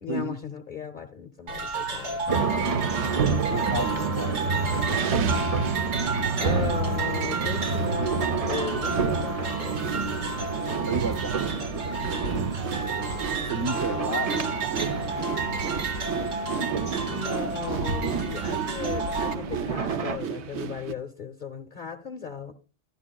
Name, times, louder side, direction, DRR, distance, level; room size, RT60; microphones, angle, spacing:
voice 1, 0.0-2.3 6.4-9.8 17.0-22.5, left 7 dB, 45° left, 0.8 m, -37 dB
sound 1, 1.5-19.3, right 3 dB, 85° right, 1.3 m, -32 dB
sound 2, 2.3-20.2, right 4 dB, 50° right, 0.4 m, -29 dB
sound 3, 2.7-3.2 4.0-20.9, right 7 dB, 65° right, 0.9 m, -36 dB
voice 2, 3.5-4.5 10.9-13.1 13.4-15.8, right 2 dB, 25° right, 0.9 m, -34 dB
12.5 x 11.5 x 2.3 m
omnidirectional pair, 1.3 m